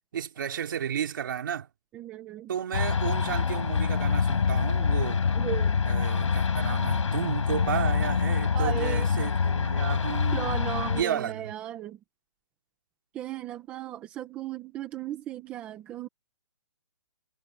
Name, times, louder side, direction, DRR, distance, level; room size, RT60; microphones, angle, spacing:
voice 1, 0.1-1.7 2.5-5.2 5.9-10.6 10.9-11.5, right 9 dB, 40° right, 2.8 m, -33 dB
voice 2, 1.9-2.5 5.3-5.8 8.5-9.1 10.3-12.0 13.1-16.1, right 12 dB, 5° right, 1.0 m, -36 dB
sound 1, 2.7-11.0, left 5 dB, 65° left, 5.1 m, -26 dB
hypercardioid pair, 175°, 17 cm